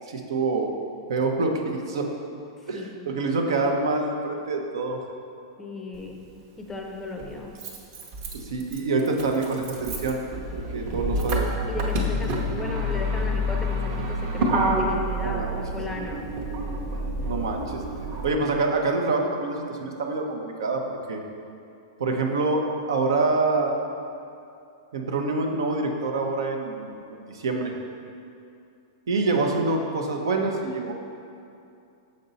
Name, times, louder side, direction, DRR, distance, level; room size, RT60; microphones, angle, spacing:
voice 1, 0.1-0.7 1.1-2.1 2.7-5.0 8.3-10.2 10.5-11.5 15.2-15.5 17.3-17.8 18.2-21.2 22.0-23.8 24.9-27.7 29.1-30.9, right 3 dB, 85° right, 3 dB, 0.8 m, -26 dB
voice 2, 2.7-3.2 5.6-6.2 6.6-7.5 11.1-16.2, left 2 dB, 10° left, 1 dB, 0.5 m, -36 dB
Motor vehicle (road), 5.9-6.0 7.2-18.3, equal, 35° right, 0.8 m, -28 dB
6.6 x 5.3 x 4.1 m, 2.6 s
supercardioid pair, 165°, 2 cm